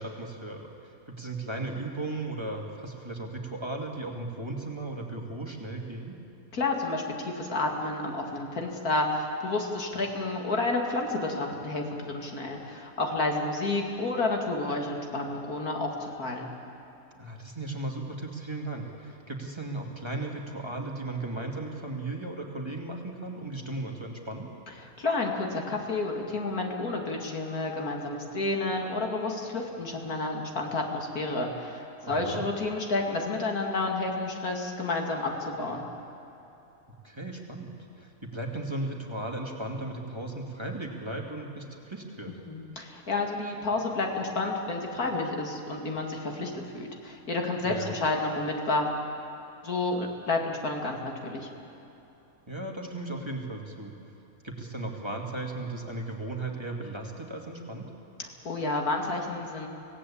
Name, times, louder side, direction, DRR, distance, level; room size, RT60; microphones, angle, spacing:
voice 1, 0.0-6.2 17.2-24.5 32.0-32.4 37.0-37.7 38.0-42.3 47.6-47.9 52.5-53.9 54.4-57.9, right 2 dB, 20° right, 0 dB, 2.2 m, -36 dB
voice 2, 6.5-16.5 24.8-35.9 42.5-48.9 49.6-51.5 58.2-59.7, left 2 dB, 85° left, 1 dB, 2.8 m, -30 dB
26.0 x 17.0 x 8.6 m, 3.0 s
omnidirectional pair, 1.5 m